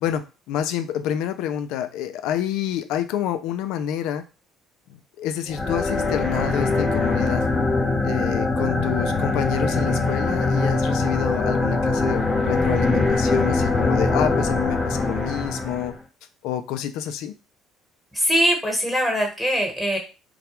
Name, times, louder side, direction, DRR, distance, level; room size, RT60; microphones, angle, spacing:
voice 1, 0.0-4.2 5.2-7.4 8.0-15.9 16.4-17.3, left 10 dB, 80° left, 9 dB, 0.3 m, -28 dB
sound 1, 5.5-16.0, left 3 dB, 20° left, 0.8 m, -22 dB
voice 2, 18.1-20.0, equal, ahead, 1 dB, 1.1 m, -22 dB
2.2 x 2.1 x 2.9 m, 0.31 s
supercardioid pair, 80°, 0 cm